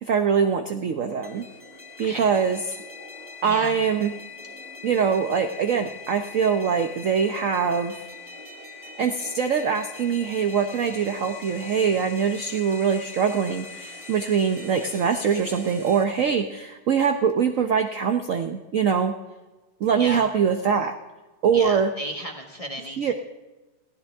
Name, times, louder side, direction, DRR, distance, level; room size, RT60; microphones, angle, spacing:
voice 1, 0.0-1.5 2.0-2.8 3.4-4.1 4.8-8.0 9.0-19.1 19.8-21.0 21.4-21.9 23.0-23.1, right 6 dB, 65° right, 6 dB, 0.8 m, -23 dB
sound 1, 1.2-16.0, left 3 dB, 10° right, 2.2 m, -42 dB
voice 2, 3.4-3.8 20.0-20.3 21.5-23.1, equal, 20° left, 2 dB, 1.2 m, -34 dB
21.5 x 16.0 x 3.5 m, 1.2 s
omnidirectional pair, 2.2 m